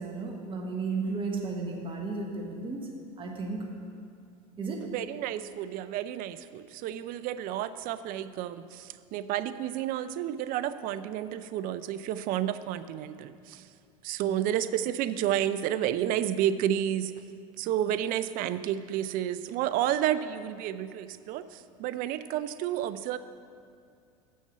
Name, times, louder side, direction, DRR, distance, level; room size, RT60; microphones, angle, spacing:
voice 1, 0.0-2.9 3.2-3.7 4.6-4.9 14.2-14.3, right 4 dB, 25° right, 0 dB, 1.2 m, -34 dB
voice 2, 4.8-13.6 14.0-17.1 17.6-23.2, right 11 dB, 50° right, 13 dB, 0.4 m, -31 dB
6.6 x 6.4 x 6.7 m, 2.3 s
hypercardioid pair, 100°, 19 cm